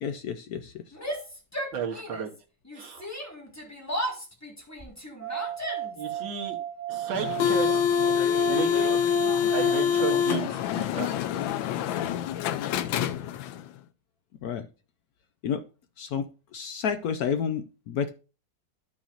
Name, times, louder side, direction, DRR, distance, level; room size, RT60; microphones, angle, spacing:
voice 1, 0.0-1.2 14.4-14.7 15.4-15.6 16.0-18.1, left 7 dB, 70° left, 9 dB, 0.9 m, -31 dB
Yell, 0.9-2.4 2.6-6.1, equal, 10° left, 1.5 m, -35 dB
voice 2, 1.7-2.3 2.7-3.1 6.0-6.6 6.9-7.8 8.5-9.1 9.5-11.1, right 7 dB, 85° right, 4 dB, 1.9 m, -33 dB
sound 1, 5.2-10.7, right 12 dB, 60° right, 1.8 m, -35 dB
sound 2, 7.1-13.6, left 9 dB, 90° left, 1.4 m, -25 dB
13.0 x 6.0 x 2.5 m, 0.32 s
omnidirectional pair, 2.1 m